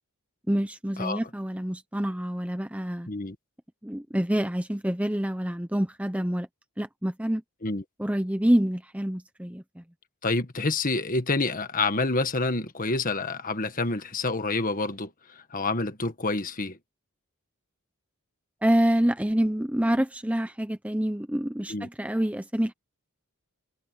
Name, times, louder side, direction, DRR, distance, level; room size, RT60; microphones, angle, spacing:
voice 1, 0.5-3.1 3.8-6.5 6.8-7.4 8.0-9.8 18.6-22.7, equal, 5° right, 0.8 m, -27 dB
voice 2, 10.2-16.8 21.7-21.9, left 3 dB, 40° left, 1.7 m, -28 dB
head